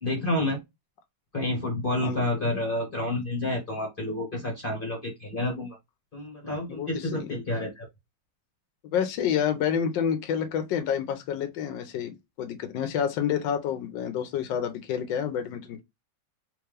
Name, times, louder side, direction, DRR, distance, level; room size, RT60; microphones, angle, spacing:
voice 1, 0.0-0.6 1.3-5.8 6.1-7.9, left 1 dB, 35° left, 1.2 m, -29 dB
voice 2, 6.7-7.4 8.9-15.8, left 8 dB, 90° left, 1.4 m, -29 dB
3.6 x 2.9 x 3.2 m
omnidirectional pair, 2.0 m